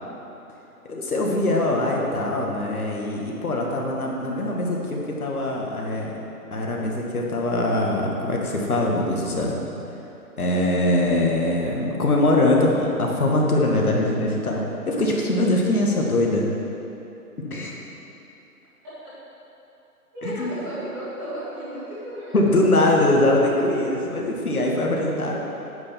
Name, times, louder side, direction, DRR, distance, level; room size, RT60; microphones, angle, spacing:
voice 1, 0.8-6.2 6.5-9.6 10.4-16.5 17.4-17.7 20.2-20.5 22.3-25.3, left 1 dB, 65° left, -1 dB, 2.2 m, -22 dB
voice 2, 20.1-22.7, right 1 dB, 10° right, -18 dB, 2.5 m, -34 dB
9.4 x 6.7 x 7.4 m, 2.9 s
hypercardioid pair, 180°, 46 cm